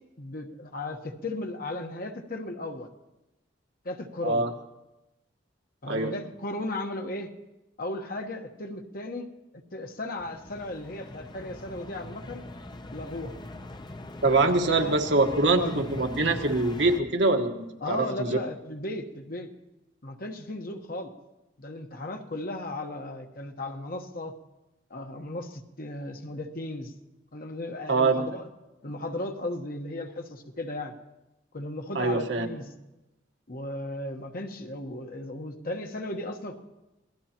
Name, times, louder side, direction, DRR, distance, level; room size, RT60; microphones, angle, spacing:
voice 1, 0.2-2.9 3.8-4.5 5.8-7.3 7.8-9.3 9.7-12.4 12.9-13.4 14.3-15.0 15.3-16.1 17.8-19.5 20.0-21.1 21.6-24.3 24.9-26.9 27.3-28.5 28.8-30.9 31.5-32.7 33.5-36.6, left 2 dB, 50° left, 4 dB, 1.2 m, -36 dB
sound 1, 10.2-17.0, left 1 dB, 25° left, 0.7 m, -42 dB
voice 2, 14.2-18.3 27.9-28.3 31.9-32.5, right 3 dB, 70° right, 3 dB, 1.4 m, -24 dB
26.0 x 18.0 x 3.0 m, 1.0 s
head